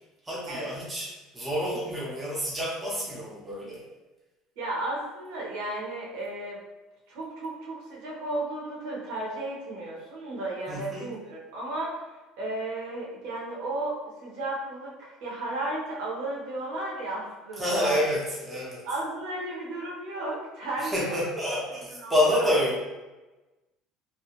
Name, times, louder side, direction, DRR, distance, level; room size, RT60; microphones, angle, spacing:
voice 1, 0.2-1.1 1.3-3.8 10.7-11.1 17.6-18.8 20.8-22.8, left 1 dB, 10° right, -6 dB, 0.5 m, -28 dB
voice 2, 4.6-6.6 7.1-18.0 18.8-21.2 21.5-21.6 22.0-22.5, right 2 dB, 75° right, -5 dB, 0.9 m, -34 dB
2.3 x 2.1 x 2.9 m, 1.1 s
cardioid pair, 150°, 0 cm